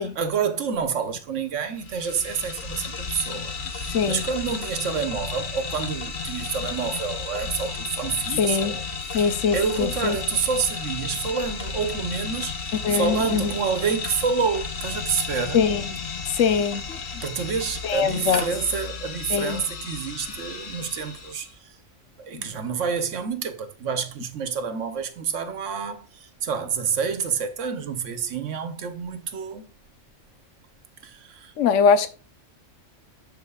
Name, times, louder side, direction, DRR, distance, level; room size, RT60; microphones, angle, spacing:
voice 1, 0.0-8.8 9.2-15.7 17.2-21.8 22.2-29.7 31.0-31.5, right 6 dB, 85° right, 1.3 m, -28 dB
sound 1, 1.8-21.5, left 5 dB, 45° left, 1.0 m, -33 dB
voice 2, 3.9-4.2 8.4-8.8 9.1-10.2 12.8-13.5 15.5-15.8 16.4-17.0 17.8-18.4 19.3-19.6 22.3-22.4 31.6-32.1, left 6 dB, 85° left, 1.1 m, -22 dB
12.0 x 4.5 x 2.3 m
omnidirectional pair, 1.2 m